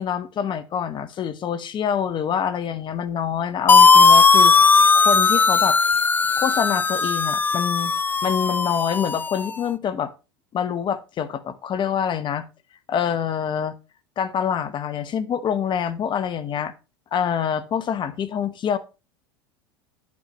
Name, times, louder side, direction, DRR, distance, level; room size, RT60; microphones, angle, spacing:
voice 1, 0.0-4.5 4.9-5.8 6.4-7.9 8.2-10.1 10.5-12.4 12.9-13.7 14.2-16.7 17.1-18.8, left 8 dB, 35° left, 1.0 m, -26 dB
sound 1, 3.7-9.5, left 4 dB, 15° left, 0.4 m, -17 dB
9.3 x 8.5 x 3.0 m
hypercardioid pair, 90°, 14 cm